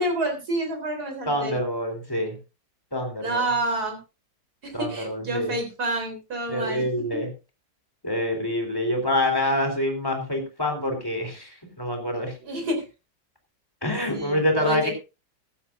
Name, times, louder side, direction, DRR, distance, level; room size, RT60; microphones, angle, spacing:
voice 1, 0.0-1.6 3.2-4.0 4.6-6.8 7.1-7.2 12.4-12.8 14.1-14.9, right 1 dB, 60° right, 3 dB, 4.3 m, -28 dB
voice 2, 1.3-2.4 2.9-3.4 4.7-5.5 6.5-7.3 8.0-12.3 13.8-14.9, left 1 dB, 10° left, 3 dB, 3.4 m, -26 dB
15.0 x 13.5 x 2.6 m, 0.29 s
omnidirectional pair, 1.9 m